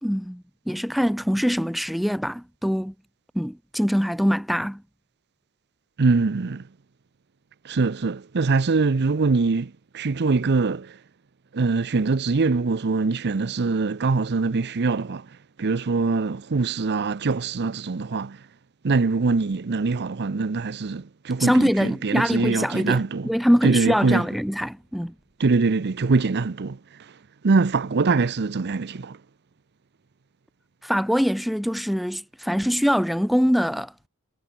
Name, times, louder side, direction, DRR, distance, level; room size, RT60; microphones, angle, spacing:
voice 1, 0.0-2.9 3.3-4.8 21.4-25.1 30.8-33.9, equal, ahead, 0.4 m, -23 dB
voice 2, 6.0-6.6 7.6-11.0 11.5-18.5 18.8-23.3 23.6-24.2 25.4-27.2 27.4-29.2, right 4 dB, 50° right, 0.6 m, -23 dB
head